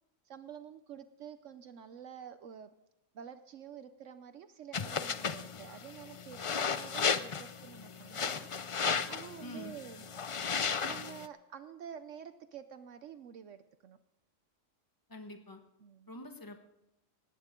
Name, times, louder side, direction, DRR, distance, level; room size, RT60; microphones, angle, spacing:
voice 1, 0.2-2.7 3.1-8.5 9.1-10.1 10.8-14.0 15.8-16.1, right 8 dB, 70° right, 11 dB, 1.0 m, -49 dB
sound 1, 4.7-11.3, left 6 dB, 50° left, 0.3 m, -35 dB
voice 2, 9.4-9.8 15.1-15.6 16.1-16.6, left 1 dB, 15° left, 5 dB, 1.3 m, -46 dB
19.0 x 16.5 x 3.7 m, 0.86 s
omnidirectional pair, 1.4 m